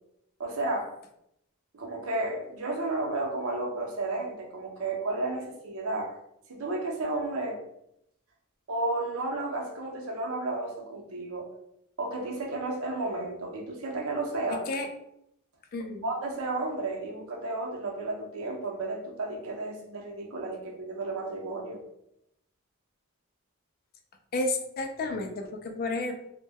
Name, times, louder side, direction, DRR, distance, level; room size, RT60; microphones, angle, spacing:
voice 1, 0.4-0.9 1.7-6.1 6.5-7.6 8.7-11.5 12.0-14.6 16.0-21.8, right 2 dB, 65° right, 0 dB, 0.6 m, -32 dB
voice 2, 14.5-14.9 15.7-16.0 24.3-26.1, left 2 dB, 40° left, 4 dB, 0.3 m, -31 dB
2.1 x 2.1 x 3.4 m, 0.78 s
head